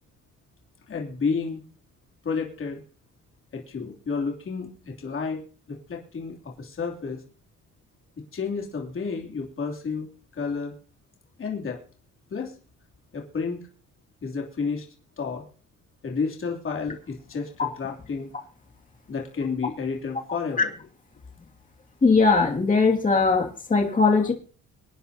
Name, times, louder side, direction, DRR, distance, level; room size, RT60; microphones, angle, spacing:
voice 1, 0.9-1.6 2.2-2.8 3.5-7.2 8.3-10.1 10.3-10.7 11.4-11.8 12.3-12.5 13.1-13.6 14.2-14.8 15.2-15.4 16.0-18.3 19.1-20.7, left 5 dB, 45° left, 0 dB, 3.0 m, -31 dB
voice 2, 22.0-24.3, left 4 dB, 25° left, 1 dB, 2.4 m, -20 dB
24.5 x 10.0 x 2.8 m, 0.40 s
cardioid pair, 90°, 30 cm